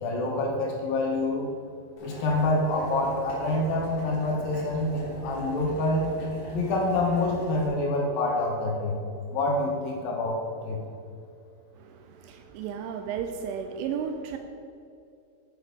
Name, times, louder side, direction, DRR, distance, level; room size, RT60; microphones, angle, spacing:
voice 1, 0.0-1.5 2.0-6.1 6.5-9.0 9.3-10.8, left 2 dB, 75° left, 0 dB, 2.2 m, -27 dB
Boiling, 2.0-7.7, left 1 dB, 40° left, 3.3 m, -41 dB
voice 2, 11.8-14.4, right 7 dB, 85° right, 6 dB, 3.0 m, -34 dB
8.5 x 8.2 x 5.2 m, 2.5 s
omnidirectional pair, 5.4 m